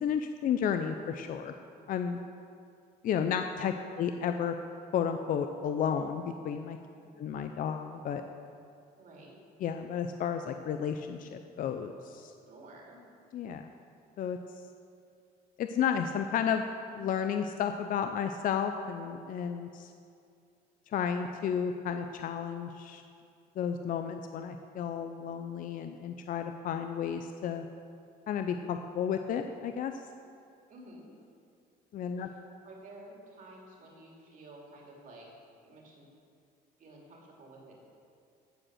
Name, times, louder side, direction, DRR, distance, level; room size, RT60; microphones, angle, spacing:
voice 1, 0.0-1.5 1.9-2.2 3.0-4.5 4.9-6.8 7.2-8.2 9.6-12.3 13.3-13.7 14.2-14.4 15.6-16.6 16.9-19.9 20.9-23.0 23.6-27.6 28.3-29.9 31.9-32.3, left 8 dB, 55° left, 7 dB, 0.5 m, -32 dB
voice 2, 8.9-9.4 12.5-13.0 30.7-31.1 32.2-32.3 32.6-35.3 35.6-36.1 36.8-37.8, right 1 dB, 50° right, -2 dB, 2.7 m, -52 dB
15.0 x 5.0 x 6.4 m, 2.4 s
cardioid pair, 110°, 17 cm